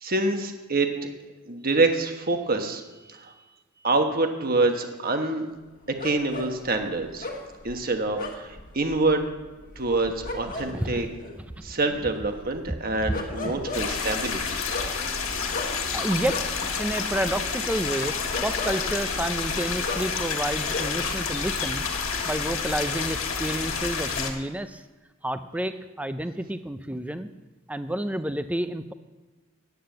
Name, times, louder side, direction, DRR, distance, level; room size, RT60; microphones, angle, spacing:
voice 1, 0.0-0.9 1.5-2.8 3.1-3.3 3.8-5.5 6.0-7.3 7.6-9.2 9.8-11.1 11.6-14.6, right 2 dB, 45° right, 6 dB, 1.2 m, -26 dB
sound 1, 6.0-21.2 21.5-22.2, left 2 dB, 40° left, 1.5 m, -38 dB
voice 2, 10.6-11.1 11.4-11.7 12.9-13.1 13.4-13.6 15.9-18.2 18.4-21.8 22.2-24.8 25.2-27.3 27.7-28.9, right 1 dB, 5° right, 11 dB, 0.5 m, -30 dB
sound 2, 13.7-24.3, left 5 dB, 65° left, 1.6 m, -29 dB
9.5 x 8.9 x 7.7 m, 1.2 s
head